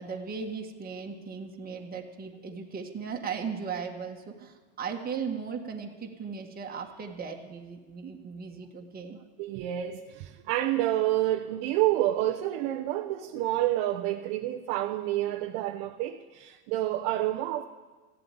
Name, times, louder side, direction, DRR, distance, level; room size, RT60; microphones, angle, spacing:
voice 1, 0.0-9.2, right 6 dB, 20° right, 1 dB, 1.8 m, -37 dB
voice 2, 9.4-17.6, right 14 dB, 60° right, 2 dB, 1.0 m, -28 dB
15.5 x 8.0 x 9.2 m, 1.3 s
supercardioid pair, 115°, 40 cm